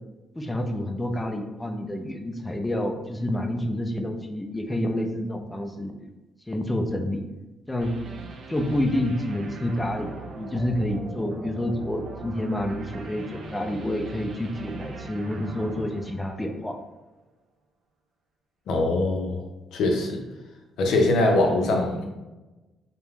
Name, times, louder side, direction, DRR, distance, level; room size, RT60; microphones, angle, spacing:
voice 1, 0.4-5.9 6.5-7.2 7.7-7.9 8.5-16.8, left 1 dB, 10° left, 3 dB, 0.4 m, -28 dB
sound 1, 7.8-16.9, right 4 dB, 60° right, 0.4 m, -40 dB
voice 2, 18.7-19.4 19.7-20.2 20.8-22.0, left 2 dB, 80° left, 2 dB, 0.5 m, -22 dB
2.4 x 2.1 x 3.2 m, 1.1 s
cardioid pair, 90°, 0 cm